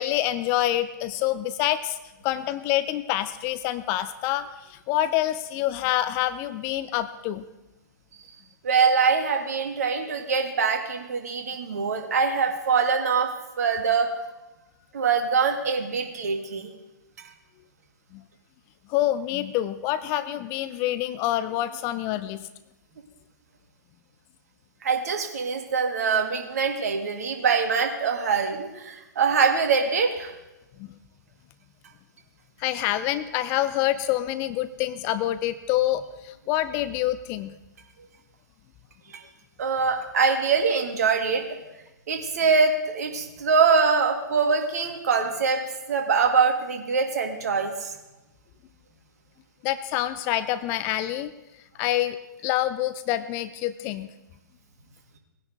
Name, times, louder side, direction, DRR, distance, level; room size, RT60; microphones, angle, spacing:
voice 1, 0.0-2.0 2.2-7.4 18.1-18.2 18.9-22.5 30.8-30.9 32.6-37.5 49.6-51.3 51.8-52.2 52.4-54.1, left 13 dB, 25° left, 13 dB, 0.3 m, -26 dB
voice 2, 8.6-13.3 13.6-14.1 14.9-16.7 24.8-30.3 39.1-39.2 39.6-41.4 42.1-45.6 45.9-47.9, right 5 dB, 55° right, 3 dB, 1.7 m, -23 dB
19.5 x 10.0 x 2.6 m, 1.0 s
figure-of-eight pair, 120°, 10 cm